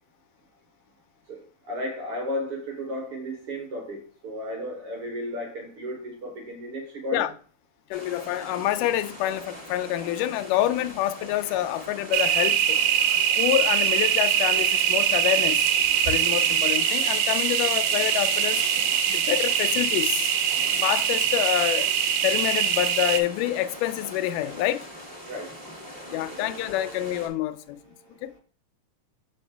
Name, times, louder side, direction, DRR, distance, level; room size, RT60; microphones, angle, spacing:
voice 1, 1.3-7.3 25.2-27.1 27.9-28.4, equal, 55° right, 1.7 m, -35 dB
voice 2, 7.9-12.8 13.4-15.7 16.1-18.6 19.1-20.3 20.8-21.9 22.2-24.9 26.1-27.8 28.2-28.3, left 13 dB, 90° left, 2.1 m, -27 dB
sound 1, 7.9-27.3, equal, 15° right, 0.8 m, -42 dB
sound 2, 12.1-23.2, right 9 dB, 80° right, 2.0 m, -23 dB
7.1 x 5.0 x 3.3 m
omnidirectional pair, 3.6 m